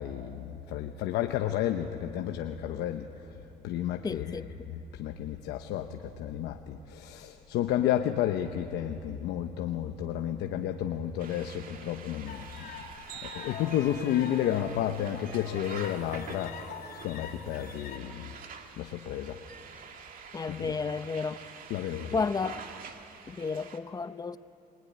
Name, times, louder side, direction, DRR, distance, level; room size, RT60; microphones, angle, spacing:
voice 1, 0.0-3.1 3.6-4.3 4.7-12.7 13.2-16.6 17.0-18.3 18.8-19.4 20.5-20.7 21.7-22.2, left 11 dB, 85° left, 1.0 m, -31 dB
voice 2, 4.0-4.5 20.3-21.4 22.1-22.6 23.3-24.4, left 4 dB, 20° left, 0.7 m, -32 dB
sound 1, 11.2-23.8, right 6 dB, 55° right, 2.2 m, -47 dB
sound 2, 12.3-18.0, left 5 dB, 65° left, 3.3 m, -44 dB
24.5 x 20.5 x 9.7 m
cardioid pair, 110°, 17 cm